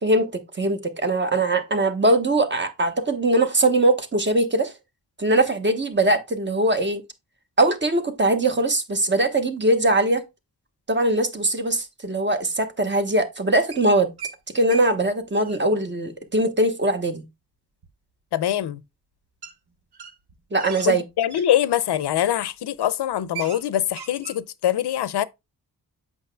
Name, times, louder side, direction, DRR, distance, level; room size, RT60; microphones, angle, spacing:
voice 1, 0.0-4.7 5.2-7.0 7.6-10.2 10.9-14.1 14.5-17.2 20.5-21.0, right 2 dB, 30° right, 1.1 m, -21 dB
sound 1, 13.7-14.4 14.7-14.9 15.1-15.6 17.8-17.9 19.4-19.5 19.9-21.5 22.1-22.4 22.7-22.8 23.1-23.6 23.9-24.4, right 7 dB, 75° right, 1.1 m, -38 dB
voice 2, 18.3-18.8 20.9-25.3, left 11 dB, 85° left, 0.6 m, -23 dB
7.9 x 5.8 x 2.2 m
wide cardioid pair, 95°, 39 cm